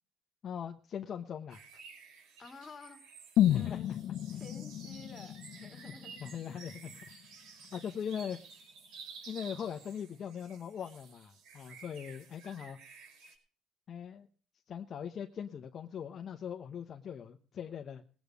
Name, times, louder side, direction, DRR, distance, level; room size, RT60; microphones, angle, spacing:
voice 1, 0.4-1.6 3.5-3.8 6.2-6.9 7.7-8.4 9.3-12.8 13.9-14.3 14.7-18.0, left 8 dB, 35° left, 4 dB, 1.0 m, -40 dB
sound 1, 1.5-13.3, right 5 dB, 80° right, 5.2 m, -53 dB
voice 2, 2.4-3.0 3.4-3.9 4.3-6.2, left 3 dB, 20° left, 5 dB, 2.2 m, -51 dB
sound 2, 3.4-7.3 7.6-7.7, left 12 dB, 55° left, 0.5 m, -32 dB
20.0 x 8.3 x 5.2 m, 0.42 s
cardioid pair, 160°, 0 cm